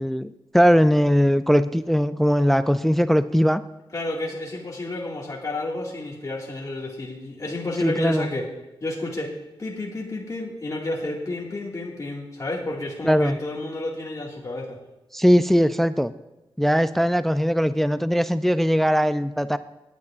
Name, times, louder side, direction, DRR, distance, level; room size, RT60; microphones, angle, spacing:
voice 1, 0.0-3.6 7.8-8.3 13.0-13.4 15.1-16.1 16.6-19.6, equal, 5° left, 12 dB, 0.3 m, -20 dB
voice 2, 3.9-8.5 8.8-9.3 9.6-14.8, left 2 dB, 35° left, -2 dB, 1.9 m, -31 dB
18.0 x 9.4 x 2.4 m, 1.0 s
cardioid pair, 75°, 9 cm